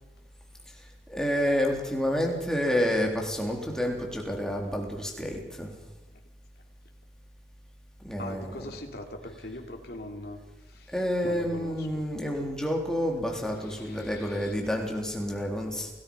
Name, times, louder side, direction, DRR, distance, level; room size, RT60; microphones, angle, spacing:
voice 1, 0.7-5.7 8.0-8.7 10.9-15.9, equal, 5° left, 0 dB, 3.6 m, -29 dB
voice 2, 8.2-10.4 10.7-12.0 13.6-14.5, left 1 dB, 55° left, 3 dB, 3.0 m, -42 dB
28.5 x 19.0 x 5.5 m, 1.0 s
head